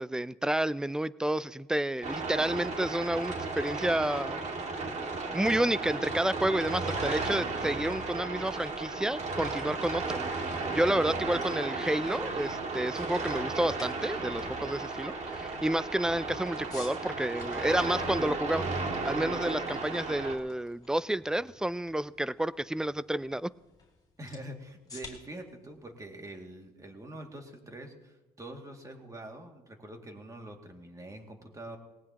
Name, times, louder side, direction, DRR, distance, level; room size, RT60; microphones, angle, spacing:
voice 1, 0.0-4.4 5.3-10.2 10.7-18.7 19.0-23.5, right 1 dB, 5° right, 18 dB, 0.3 m, -30 dB
sound 1, 2.0-20.4, right 3 dB, 45° right, 2.0 m, -34 dB
sound 2, 11.2-27.1, left 3 dB, 25° left, 3.6 m, -54 dB
voice 2, 24.2-31.8, right 1 dB, 20° right, 3 dB, 2.2 m, -45 dB
19.0 x 18.5 x 2.9 m, 1.1 s
cardioid pair, 110°, 17 cm